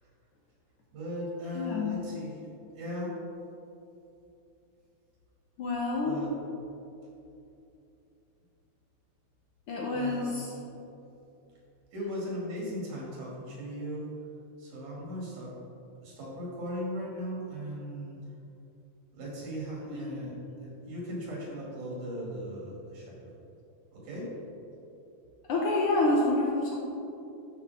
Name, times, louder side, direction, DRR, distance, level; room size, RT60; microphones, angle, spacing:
voice 1, 0.9-2.4 2.7-3.2 6.0-6.3 9.9-10.4 11.9-14.1 14.6-15.6 16.0-18.2 19.1-23.3 23.9-24.3, equal, 85° right, -5 dB, 3.7 m, -38 dB
voice 2, 1.5-2.1 5.6-6.2 9.7-10.5 19.9-20.3 25.5-26.7, left 2 dB, 85° left, -2 dB, 1.2 m, -28 dB
12.5 x 5.6 x 3.5 m, 2.8 s
omnidirectional pair, 3.5 m